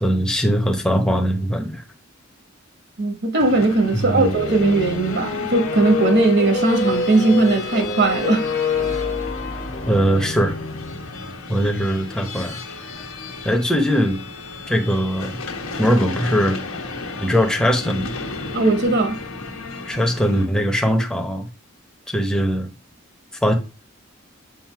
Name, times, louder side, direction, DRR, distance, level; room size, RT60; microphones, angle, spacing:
voice 1, 0.0-1.8 3.9-4.3 9.9-10.5 11.5-12.6 13.4-14.2 14.7-15.4 15.8-16.6 17.2-18.1 19.9-21.5 22.1-22.7 23.4-23.5, equal, 5° left, 0.8 m, -20 dB
voice 2, 3.0-8.4 18.5-19.2, right 2 dB, 55° right, 1.4 m, -18 dB
sound 1, 3.4-20.5, left 3 dB, 85° left, 1.2 m, -34 dB
sound 2, 4.2-11.1, left 4 dB, 40° left, 1.0 m, -27 dB
7.5 x 2.7 x 5.7 m
head